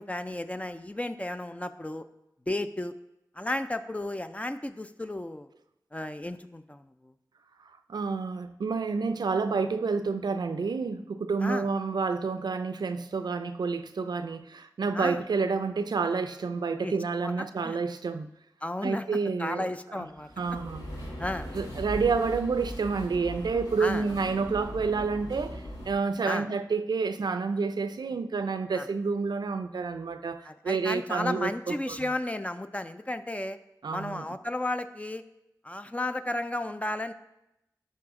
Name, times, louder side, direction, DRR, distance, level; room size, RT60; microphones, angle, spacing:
voice 1, 0.0-2.1 2.5-2.9 3.4-5.5 5.9-7.1 11.4-11.7 14.9-15.2 16.8-16.9 17.2-17.8 18.6-19.0 19.4-20.3 21.0-21.5 23.8-24.1 26.2-26.5 28.7-28.9 30.4-33.6 33.9-35.2 35.6-37.1, left 1 dB, 20° left, 0.4 m, -33 dB
voice 2, 7.9-18.3 18.8-19.7 20.4-20.8 21.5-32.0 33.8-34.3, right 4 dB, 75° right, 0.4 m, -29 dB
sound 1, 20.1-25.9, equal, 80° left, 2.6 m, -39 dB
11.5 x 4.2 x 3.7 m
cardioid pair, 45°, 7 cm